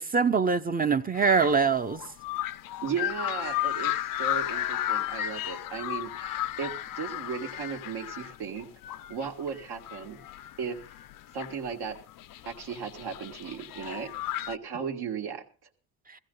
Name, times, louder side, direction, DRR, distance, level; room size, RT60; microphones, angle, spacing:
voice 1, 0.0-2.0, right 5 dB, 20° right, 0.7 m, -24 dB
sound 1, 1.2-14.6, left 13 dB, 55° left, 0.6 m, -34 dB
voice 2, 2.8-8.7 9.1-10.2 10.6-10.8 11.3-12.0 12.5-14.1 14.5-15.4, right 6 dB, 70° right, 2.0 m, -36 dB
15.5 x 15.5 x 3.9 m
cardioid pair, 95°, 40 cm